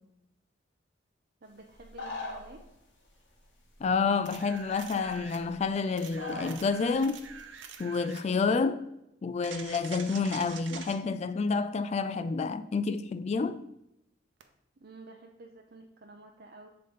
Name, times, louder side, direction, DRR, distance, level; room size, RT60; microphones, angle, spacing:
voice 1, 1.4-2.6 14.8-16.7, right 2 dB, 55° right, 0.6 m, -51 dB
sound 1, 1.7-2.7 3.8-3.9 4.6-4.7 5.0-5.7 6.1-6.6 6.9-7.4, left 2 dB, 80° left, 1.7 m, -40 dB
voice 2, 3.8-7.2 7.8-8.9 9.2-13.6, left 4 dB, 35° left, 0.3 m, -29 dB
sound 2, 4.3-5.5 6.0-8.3 9.4-11.0 14.4-14.5, right 6 dB, 90° right, 0.8 m, -45 dB
7.5 x 3.8 x 5.0 m
head